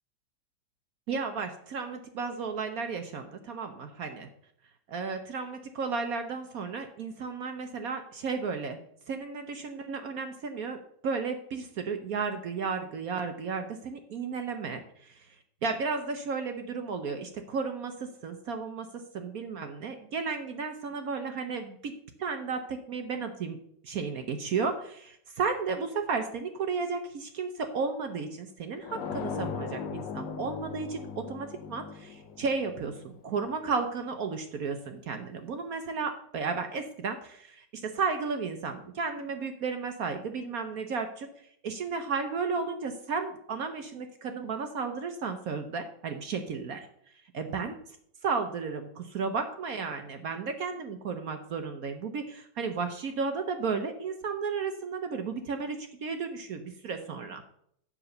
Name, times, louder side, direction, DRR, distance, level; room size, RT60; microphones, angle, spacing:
voice 1, 1.1-4.3 4.9-8.8 9.1-15.4 15.6-21.9 22.2-23.6 23.8-46.9 47.3-47.7 48.2-57.4, right 5 dB, 60° right, 7 dB, 1.0 m, -33 dB
sound 1, 28.8-33.5, left 6 dB, 75° left, 1.5 m, -38 dB
7.6 x 6.0 x 6.5 m, 0.69 s
omnidirectional pair, 2.1 m